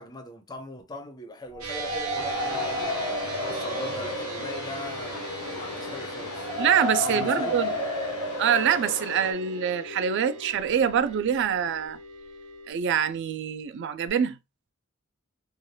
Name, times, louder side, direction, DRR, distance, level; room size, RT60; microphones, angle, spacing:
voice 1, 0.0-3.2 3.4-6.5 7.0-7.9, left 1 dB, 20° left, 0.4 m, -40 dB
sound 1, 1.5-11.4, equal, 40° right, 1.2 m, -34 dB
sound 2, 1.6-12.7, right 3 dB, 85° right, 0.6 m, -39 dB
Chatter / Subway metro underground, 2.2-9.3, left 4 dB, 85° left, 0.4 m, -37 dB
voice 2, 6.6-7.7 8.4-12.0 12.7-14.4, right 8 dB, 55° right, 0.3 m, -25 dB
3.2 x 2.2 x 2.6 m
head